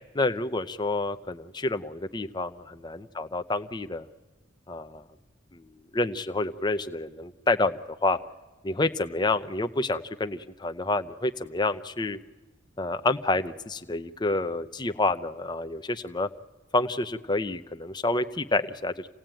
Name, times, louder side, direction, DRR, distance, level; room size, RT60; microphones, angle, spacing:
voice 1, 0.1-2.5 2.8-4.1 4.7-5.0 5.5-5.6 5.9-8.2 8.6-12.2 12.8-16.3 16.7-19.1, left 2 dB, 20° left, 9 dB, 0.7 m, -28 dB
27.5 x 17.5 x 9.0 m, 1.3 s
head